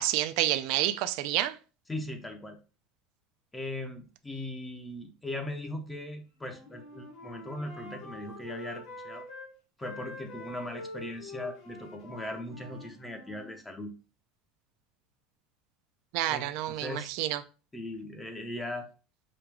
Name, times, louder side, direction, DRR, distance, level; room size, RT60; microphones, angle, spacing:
voice 1, 0.0-1.6 16.1-17.4, right 14 dB, 65° right, 0.4 m, -29 dB
voice 2, 1.9-2.6 3.5-9.2 9.8-13.9 16.3-17.1 17.7-18.9, left 1 dB, 10° left, 0.6 m, -39 dB
Wind instrument woodwind instrument, 6.4-9.5 9.8-13.6, left 2 dB, 60° left, 1.3 m, -45 dB
5.0 x 2.3 x 3.3 m
supercardioid pair, 135°, 0 cm